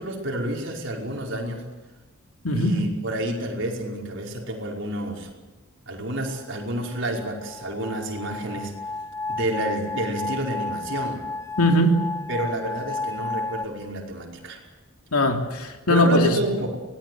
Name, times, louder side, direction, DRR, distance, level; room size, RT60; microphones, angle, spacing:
voice 1, 0.0-1.6 2.5-5.3 5.9-8.7 9.3-11.2 12.3-14.6 15.9-16.8, right 1 dB, 55° right, 0 dB, 5.3 m, -29 dB
voice 2, 2.4-2.8 11.6-12.0 15.1-16.3, left 1 dB, 85° left, 4 dB, 3.2 m, -20 dB
sound 1, 6.5-13.7, left 3 dB, 15° left, 1.1 m, -32 dB
25.0 x 19.0 x 8.0 m, 1.2 s
head